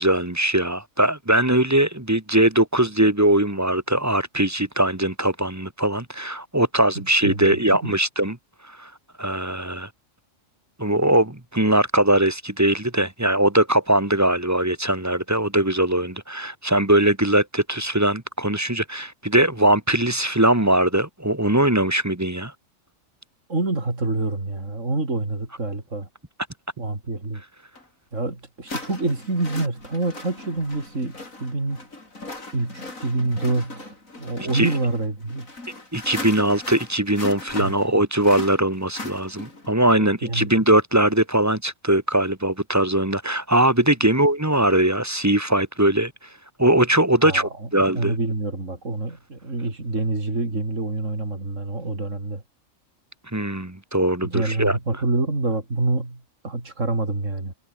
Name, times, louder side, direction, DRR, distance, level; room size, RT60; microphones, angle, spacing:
voice 1, 0.0-8.4 8.7-8.9 9.2-9.9 10.8-22.5 34.5-34.7 35.9-46.1 46.6-48.1 53.3-54.8, right 1 dB, 10° right, 1.7 m, -21 dB
voice 2, 23.5-26.1 26.8-27.4 28.1-31.8 32.5-35.5 37.6-37.7 40.0-40.5 47.2-47.5 47.9-52.4 54.3-57.5, right 2 dB, 70° right, 4.7 m, -27 dB
sound 1, 27.8-27.9 28.7-39.7, left 2 dB, 90° left, 5.5 m, -38 dB
omnidirectional pair, 1.4 m